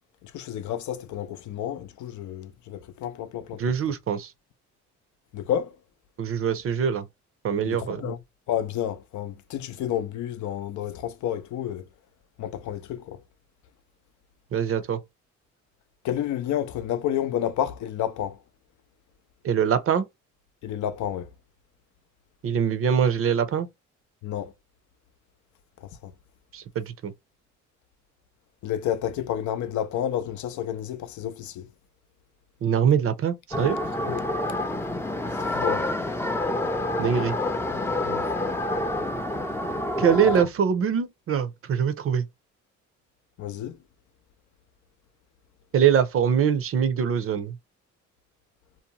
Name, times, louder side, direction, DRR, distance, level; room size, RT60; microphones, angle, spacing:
voice 1, 0.2-3.8 5.3-5.8 7.6-8.2 8.5-11.9 12.4-13.2 16.0-18.4 20.6-21.3 24.2-24.5 25.8-26.1 28.6-31.7 34.0-34.3 35.4-35.9 37.7-38.3 40.4-40.5 43.4-43.8, left 10 dB, 70° left, 0.5 m, -30 dB
voice 2, 3.6-4.3 6.2-7.1 7.4-8.0 14.5-15.0 19.4-20.0 22.4-23.7 26.5-27.1 32.6-33.8 37.0-37.3 40.0-42.2 45.7-47.6, right 7 dB, 45° right, 0.5 m, -23 dB
sound 1, 33.5-40.4, left 1 dB, 10° left, 0.4 m, -28 dB
2.7 x 2.1 x 2.8 m
cardioid pair, 90°, 30 cm